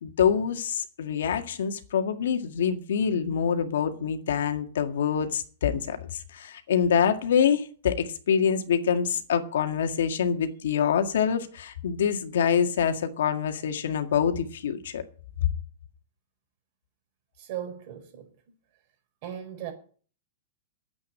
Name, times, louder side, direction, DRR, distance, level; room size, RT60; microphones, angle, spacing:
voice 1, 0.0-15.0, left 7 dB, 80° left, 1.9 m, -25 dB
voice 2, 17.4-18.3 19.2-19.7, right 10 dB, 45° right, 4.8 m, -37 dB
9.8 x 8.4 x 8.9 m
hypercardioid pair, 155°, 0 cm